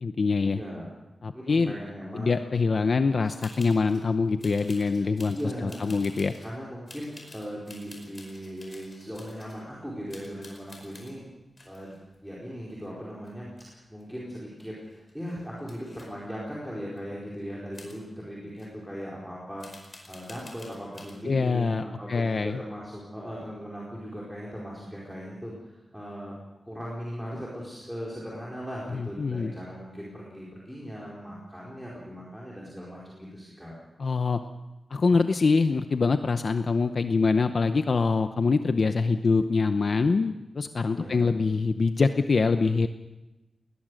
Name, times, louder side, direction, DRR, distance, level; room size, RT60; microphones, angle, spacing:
voice 1, 0.0-0.6 1.2-1.7 2.1-5.4 5.6-6.3 21.2-22.6 28.9-29.5 34.0-34.4 34.9-42.9, left 4 dB, 50° left, 8 dB, 0.8 m, -24 dB
voice 2, 0.5-0.9 1.3-2.3 5.3-6.1 6.4-11.3 11.6-12.0 12.2-14.8 15.1-25.5 25.9-26.4 26.7-33.7 40.9-41.3, equal, ahead, -6 dB, 4.6 m, -38 dB
sound 1, 3.3-4.1 4.4-6.5 6.9-9.7 10.1-11.1 11.6-13.0 13.3-14.0 14.3-14.4 14.6-16.1 17.0-17.1 17.7-18.0 18.6-18.7 19.6-21.2, left 2 dB, 35° left, 4.9 m, -50 dB
20.5 x 19.5 x 6.4 m, 1.0 s
wide cardioid pair, 150°, 0 cm